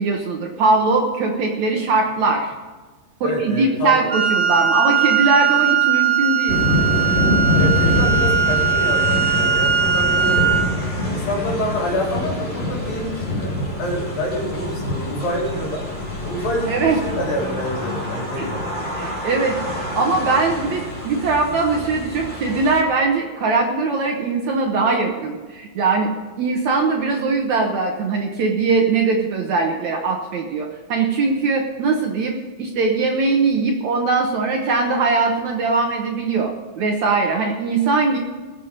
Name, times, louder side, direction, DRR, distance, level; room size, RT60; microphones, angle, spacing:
voice 1, 0.0-2.5 3.2-6.6 16.7-17.0 18.4-18.5 18.9-26.1 26.4-38.2, right 3 dB, 60° right, 1 dB, 2.1 m, -21 dB
voice 2, 3.2-4.1 7.6-15.8 16.2-18.6, equal, 65° left, -2 dB, 5.5 m, -27 dB
Wind instrument woodwind instrument, 4.1-10.7, right 8 dB, 20° right, 3.8 m, -19 dB
sound 1, 6.5-22.8, left 1 dB, 20° left, 3.4 m, -25 dB
20.0 x 8.2 x 5.3 m, 1.3 s
omnidirectional pair, 4.4 m